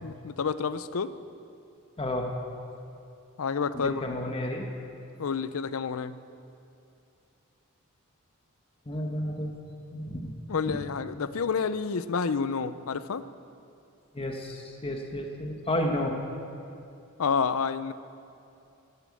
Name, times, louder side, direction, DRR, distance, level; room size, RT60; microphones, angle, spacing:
voice 1, 0.0-1.1 3.4-4.0 5.2-6.2 10.5-13.3 17.2-17.9, left 5 dB, 70° left, 14 dB, 0.5 m, -29 dB
voice 2, 2.0-2.3 3.7-4.7 8.9-9.5 9.9-10.4 10.7-10.8 14.1-16.2, left 1 dB, 25° left, 2 dB, 1.2 m, -31 dB
12.5 x 11.0 x 8.4 m, 2.6 s
head